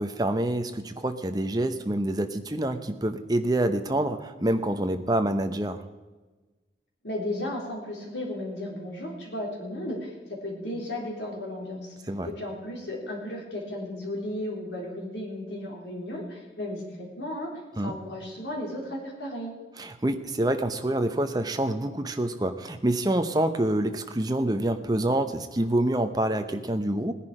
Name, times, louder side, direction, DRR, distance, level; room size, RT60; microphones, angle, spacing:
voice 1, 0.0-5.8 12.1-12.3 17.8-17.9 19.8-27.1, right 1 dB, 20° right, 8 dB, 0.9 m, -27 dB
voice 2, 7.0-11.9 12.2-17.5 17.8-19.5, left 1 dB, 85° left, -1 dB, 3.9 m, -34 dB
18.0 x 10.5 x 5.0 m, 1.3 s
head